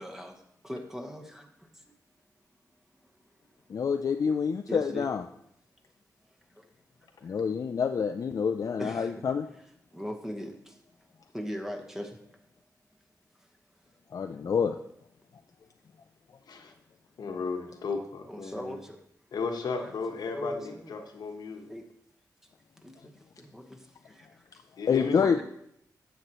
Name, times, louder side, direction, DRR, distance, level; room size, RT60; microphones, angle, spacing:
voice 1, 0.0-2.0 4.7-5.1 6.5-6.7 8.8-9.1 9.9-10.8 11.3-12.2 18.3-19.0 19.8-19.9 20.3-20.9 21.7-21.9 22.8-24.4 25.2-25.4, equal, 5° right, 3 dB, 1.1 m, -40 dB
voice 2, 3.7-5.2 7.2-9.4 14.1-14.8 24.9-25.4, left 6 dB, 55° left, 6 dB, 0.4 m, -27 dB
voice 3, 17.2-18.8 19.3-21.7 24.8-25.2, left 4 dB, 80° left, 4 dB, 1.1 m, -34 dB
9.7 x 7.6 x 3.0 m, 0.73 s
cardioid pair, 85°, 7 cm